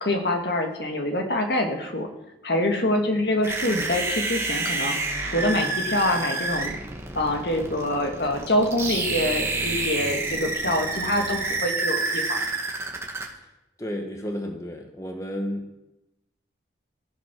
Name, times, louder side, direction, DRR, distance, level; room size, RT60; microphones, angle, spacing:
voice 1, 0.0-2.1 2.4-4.9 5.2-6.7 7.2-12.4, left 1 dB, 60° left, 3 dB, 1.8 m, -25 dB
sound 1, 3.4-13.2, right 3 dB, 15° right, 1.7 m, -28 dB
voice 2, 13.8-15.8, equal, 15° left, 3 dB, 1.0 m, -32 dB
15.0 x 8.6 x 6.1 m, 0.93 s
head